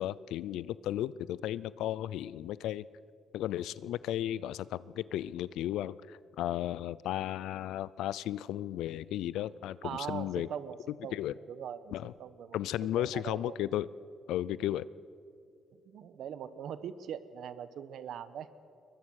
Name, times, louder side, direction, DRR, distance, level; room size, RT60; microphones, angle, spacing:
voice 1, 0.0-2.8 3.3-10.5 11.1-11.3 11.9-12.1 12.5-13.9 14.3-14.9, left 12 dB, 85° left, 20 dB, 0.5 m, -34 dB
voice 2, 9.8-11.2 11.5-13.6 15.8-18.5, right 8 dB, 75° right, 14 dB, 1.1 m, -41 dB
22.5 x 20.5 x 6.4 m, 2.5 s
cardioid pair, 90°, 0 cm